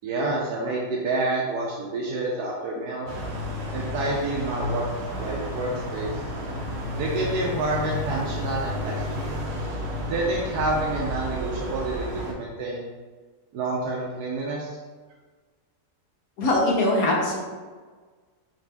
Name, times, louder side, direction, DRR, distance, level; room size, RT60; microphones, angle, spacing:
voice 1, 0.0-3.1 3.7-4.8 5.2-6.1 6.9-9.2 10.1-12.9 13.5-14.8, right 2 dB, 80° right, -3 dB, 1.2 m, -28 dB
sound 1, 3.1-12.3, left 1 dB, 50° right, 0.9 m, -31 dB
voice 2, 16.4-17.4, left 1 dB, 65° left, -2 dB, 1.4 m, -22 dB
5.0 x 3.0 x 3.4 m, 1.4 s
omnidirectional pair, 1.7 m